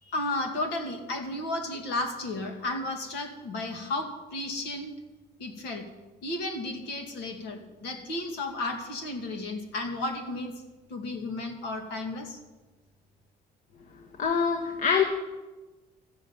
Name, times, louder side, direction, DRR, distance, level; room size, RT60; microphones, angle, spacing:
voice 1, 0.0-4.9 5.4-5.9 6.2-10.5 10.9-12.4, left 2 dB, 85° left, 5 dB, 2.4 m, -33 dB
voice 2, 14.2-15.0, left 6 dB, 50° left, 4 dB, 1.4 m, -24 dB
14.0 x 7.4 x 9.0 m, 1.2 s
cardioid pair, 110°, 17 cm